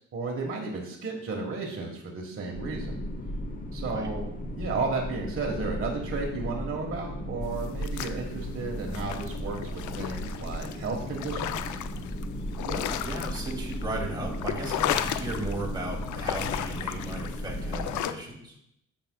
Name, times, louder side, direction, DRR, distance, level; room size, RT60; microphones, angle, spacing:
voice 1, 0.1-3.0 3.7-11.8, right 3 dB, 45° right, -1 dB, 1.3 m, -33 dB
sound 1, 2.5-18.0, equal, 30° left, 0.9 m, -35 dB
sound 2, 7.6-8.5 8.9-12.2 12.5-13.9 14.2-15.7 16.0-18.1, left 11 dB, 80° left, 0.5 m, -34 dB
voice 2, 12.6-18.6, right 2 dB, 15° right, -2 dB, 2.4 m, -36 dB
8.5 x 7.3 x 2.2 m, 0.76 s
cardioid pair, 90°, 30 cm